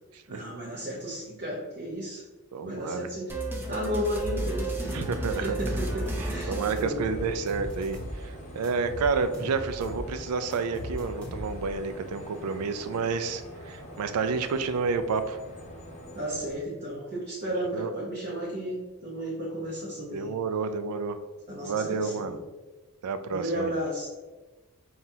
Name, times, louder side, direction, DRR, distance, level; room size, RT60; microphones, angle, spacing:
voice 1, 0.3-2.2 2.6-3.4 3.7-5.0 5.3-7.4 16.1-20.3 21.5-22.4 23.3-24.1, equal, 45° right, -7 dB, 0.8 m, -34 dB
voice 2, 2.5-3.1 4.9-5.6 6.2-15.4 17.7-17.9 20.1-21.2 21.6-22.4 23.0-23.8, right 5 dB, 80° right, 10 dB, 0.4 m, -30 dB
sound 1, 3.3-7.6, right 2 dB, 10° right, 0.5 m, -33 dB
sound 2, 3.8-16.5, equal, 30° left, 0.8 m, -44 dB
sound 3, 4.2-4.4 4.9-6.3 6.8-8.2 8.6-10.1 10.5-11.7, equal, 5° left, 0.9 m, -38 dB
5.7 x 2.3 x 2.7 m, 1.2 s
head